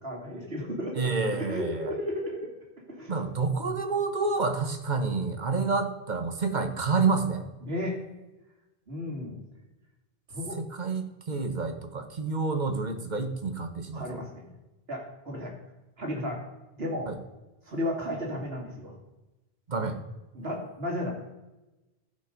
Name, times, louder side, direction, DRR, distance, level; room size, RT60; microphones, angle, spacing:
voice 1, 0.0-2.5 2.9-3.2 5.5-5.6 7.6-8.0 8.9-9.4 10.3-10.6 13.9-14.4 14.9-15.5 16.0-16.4 16.8-17.1 17.7-18.9 20.3-21.1, left 1 dB, 75° right, 0 dB, 2.8 m, -34 dB
voice 2, 0.9-1.9 3.1-7.4 10.6-14.2 17.1-17.2 19.7-20.0, right 4 dB, 50° right, 7 dB, 1.1 m, -29 dB
14.5 x 5.5 x 5.2 m, 1.0 s
omnidirectional pair, 1.0 m